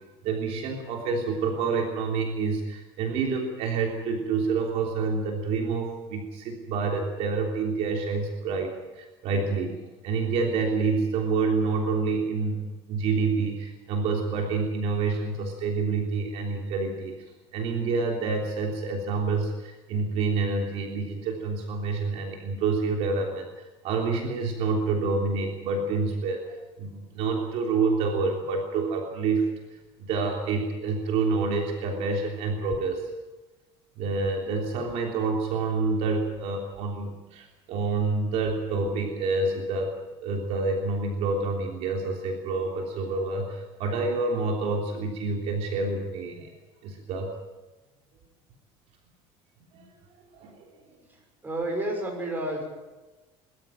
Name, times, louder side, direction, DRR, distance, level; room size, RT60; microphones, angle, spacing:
voice 1, 0.2-9.8 10.0-17.2 17.5-29.5 30.0-33.1 34.0-46.5 46.8-47.3 49.7-49.9 50.3-50.7, right 4 dB, 60° right, 1 dB, 3.4 m, -28 dB
voice 2, 50.9-51.2 51.4-52.6, right 1 dB, 15° right, 1 dB, 6.2 m, -31 dB
23.0 x 13.5 x 9.0 m, 1.2 s
cardioid pair, 155°, 12 cm